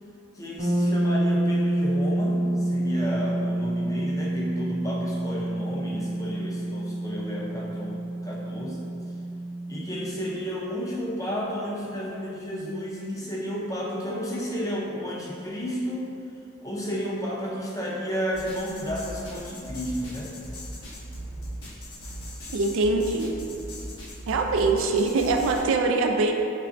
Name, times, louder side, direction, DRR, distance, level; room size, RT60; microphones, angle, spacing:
voice 1, 0.3-8.8 9.7-16.0 16.6-20.3, equal, 15° left, -5 dB, 0.5 m, -32 dB
sound 1, 0.6-10.4, right 1 dB, 50° right, 0.9 m, -27 dB
sound 2, 18.3-25.6, equal, 75° left, 1.0 m, -39 dB
voice 2, 22.5-23.4 24.3-26.3, right 3 dB, 70° right, 4 dB, 0.3 m, -23 dB
4.9 x 3.2 x 2.5 m, 2.7 s
head